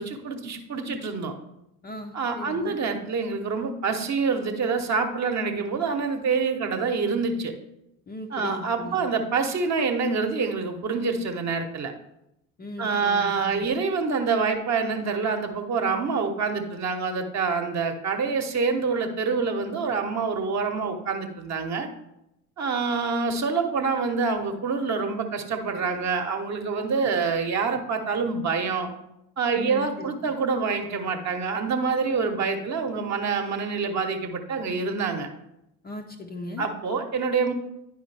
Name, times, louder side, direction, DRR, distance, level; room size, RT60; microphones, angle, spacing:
voice 1, 0.0-1.3 2.1-7.5 8.3-11.9 12.8-21.9 22.6-28.9 29.4-35.3 36.6-37.5, right 5 dB, 35° right, 5 dB, 1.1 m, -26 dB
voice 2, 1.8-2.8 8.1-9.0 12.6-13.7 29.6-30.1 35.8-36.7, left 2 dB, 20° left, 3 dB, 0.6 m, -38 dB
9.6 x 5.4 x 3.4 m, 0.84 s
figure-of-eight pair, 70°, 49 cm